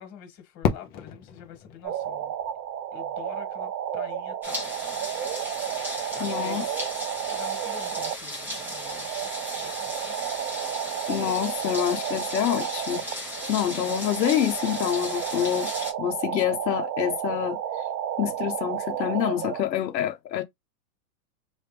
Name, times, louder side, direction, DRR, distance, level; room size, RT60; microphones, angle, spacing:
voice 1, 0.0-2.3 2.9-5.1 6.1-6.9 7.3-10.2 15.4-15.5, left 10 dB, 35° left, 1.8 m, -46 dB
Fireworks, 0.6-3.5, left 7 dB, 20° left, 0.5 m, -32 dB
sound 1, 1.8-19.6, right 9 dB, 85° right, 0.9 m, -32 dB
sound 2, 4.4-15.9, left 1 dB, 5° right, 1.0 m, -36 dB
voice 2, 6.2-6.6 11.1-13.0 13.5-15.7 16.0-17.6 18.2-20.4, left 11 dB, 85° left, 0.8 m, -26 dB
3.2 x 2.6 x 3.3 m
hypercardioid pair, 135°, 49 cm